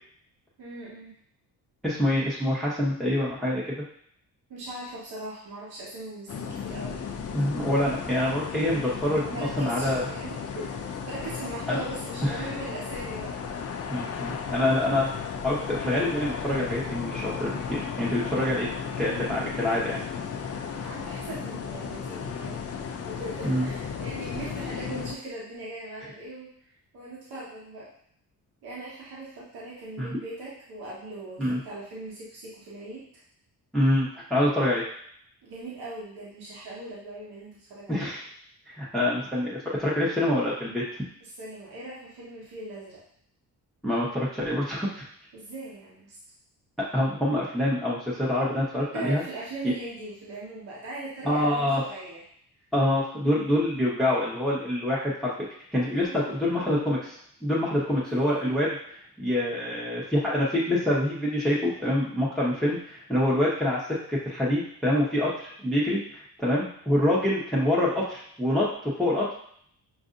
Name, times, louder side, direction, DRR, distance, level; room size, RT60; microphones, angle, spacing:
voice 1, 0.6-1.1 4.5-7.0 9.2-13.4 20.7-22.6 23.0-26.5 26.9-27.9 28.6-33.1 35.4-38.1 41.2-43.0 45.3-46.2 48.9-52.2 56.0-56.9, right 2 dB, 80° right, -6 dB, 1.4 m, -40 dB
voice 2, 1.8-3.8 7.3-10.0 11.7-11.8 12.2-12.4 13.9-15.1 15.4-18.7 19.0-20.0 23.4-23.7 30.0-30.2 31.4-31.6 33.7-34.8 37.9-38.2 38.7-41.1 43.8-45.0 46.8-49.2 49.6-49.7 51.2-51.8 52.7-55.3 55.7-69.3, left 1 dB, ahead, -7 dB, 1.0 m, -26 dB
sound 1, 6.3-25.1, left 6 dB, 40° left, 0.5 m, -35 dB
6.1 x 2.6 x 2.6 m, 0.64 s
cardioid pair, 85°, 38 cm